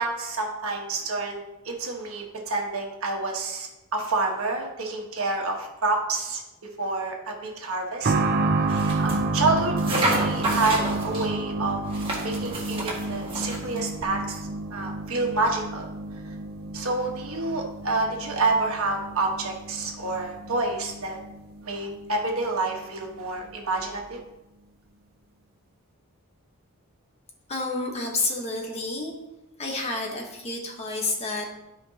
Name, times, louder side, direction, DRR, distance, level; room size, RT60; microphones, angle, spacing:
voice 1, 0.0-6.4 6.8-8.1 9.0-11.8 12.2-15.9 16.7-21.2 21.6-24.2, right 3 dB, 70° right, 1 dB, 1.3 m, -28 dB
sound 1, 8.0-22.5 22.7-22.8 23.8-23.9, right 2 dB, 45° right, 0.5 m, -30 dB
sound 2, 8.7-9.2 9.8-11.3 11.9-13.8, right 2 dB, 25° right, 1.8 m, -30 dB
voice 2, 27.5-29.1 29.6-31.5, left 2 dB, 30° left, 1 dB, 1.1 m, -29 dB
12.0 x 5.2 x 2.8 m, 0.96 s
head